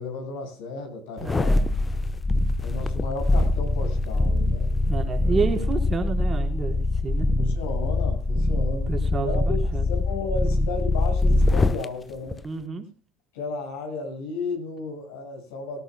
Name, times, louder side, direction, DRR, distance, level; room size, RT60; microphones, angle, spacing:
voice 1, 0.0-1.7 2.6-4.7 5.2-5.4 7.4-8.9 9.2-9.6 9.9-12.4 13.3-15.8, left 4 dB, 80° left, 1 dB, 6.1 m, -34 dB
sound 1, 1.2-11.8 12.3-12.4, left 2 dB, 20° left, 0.9 m, -23 dB
voice 2, 1.2-1.7 2.8-2.9 4.9-7.3 8.9-9.9 12.4-12.8, right 5 dB, 30° right, 4 dB, 4.3 m, -30 dB
18.0 x 18.0 x 2.2 m, 0.34 s
hypercardioid pair, 80°, 0 cm